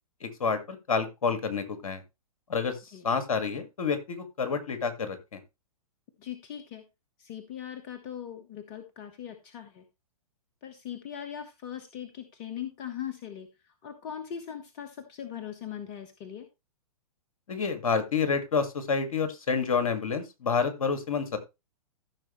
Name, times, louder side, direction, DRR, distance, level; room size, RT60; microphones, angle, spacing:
voice 1, 0.2-2.0 2.5-2.7 3.0-5.4 17.5-21.4, left 5 dB, 60° left, 9 dB, 2.2 m, -28 dB
voice 2, 6.2-6.8 7.2-9.8 10.6-13.5 13.8-16.5, left 9 dB, 35° left, 8 dB, 1.4 m, -40 dB
14.5 x 6.4 x 3.2 m, 0.25 s
figure-of-eight pair, 115°, 19 cm